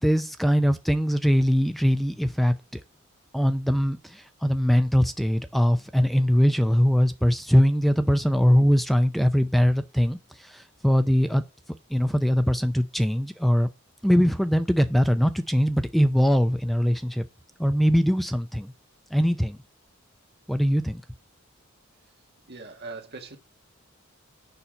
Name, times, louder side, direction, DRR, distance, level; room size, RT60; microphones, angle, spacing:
voice 1, 0.0-2.8 3.3-11.4 11.9-13.7 14.0-17.3 17.6-18.7 19.1-19.6 20.5-21.0, equal, ahead, 0.5 m, -22 dB
voice 2, 22.5-23.4, right 3 dB, 55° right, 1.5 m, -40 dB
6.9 x 5.7 x 5.1 m
head